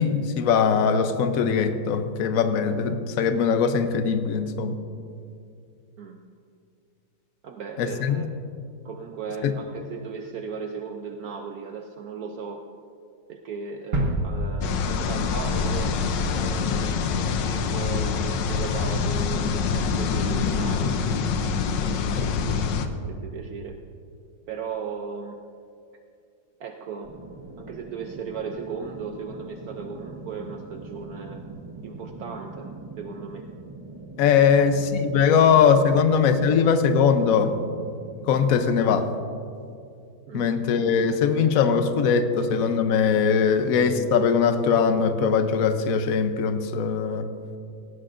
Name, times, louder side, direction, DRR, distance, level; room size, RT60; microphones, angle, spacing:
voice 1, 0.0-4.8 7.8-8.2 9.4-9.5 22.1-22.3 34.2-37.5 38.3-39.1 40.3-47.3, left 6 dB, 60° left, 8 dB, 1.1 m, -21 dB
voice 2, 7.4-8.3 8.8-12.6 13.3-21.0 21.8-23.8 24.5-25.4 26.6-27.1 27.6-31.4 31.8-32.7 33.0-33.5 34.4-34.7 35.9-36.1 36.5-36.7 37.0-37.1 40.3-40.5, right 5 dB, 65° right, 3 dB, 1.1 m, -37 dB
sound 1, 13.9-15.9 16.2-16.4, right 1 dB, 50° right, 1.7 m, -29 dB
sound 2, 14.6-22.9, left 5 dB, 90° left, 1.4 m, -25 dB
sound 3, 27.0-39.0, right 2 dB, 20° right, 0.7 m, -42 dB
17.5 x 17.5 x 2.5 m, 2.4 s
omnidirectional pair, 1.9 m